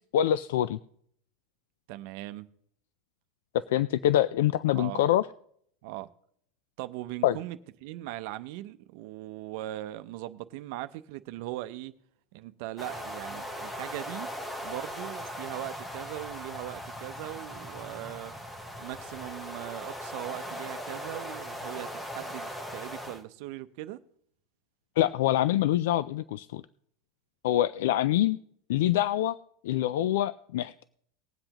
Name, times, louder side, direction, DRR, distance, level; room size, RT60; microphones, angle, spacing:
voice 1, 0.1-0.8 3.5-5.3 7.2-7.4 25.0-26.6 27.4-28.4 28.7-29.4 29.6-30.8, left 12 dB, 80° left, 16 dB, 0.3 m, -25 dB
voice 2, 1.9-2.5 4.7-5.0 5.8-6.1 6.8-11.9 12.3-14.3 14.6-18.3 18.8-24.0, right 15 dB, 60° right, 11 dB, 0.6 m, -39 dB
sound 1, 12.8-23.2, equal, 10° left, 1.0 m, -39 dB
20.0 x 7.8 x 3.0 m, 0.66 s
supercardioid pair, 145°, 0 cm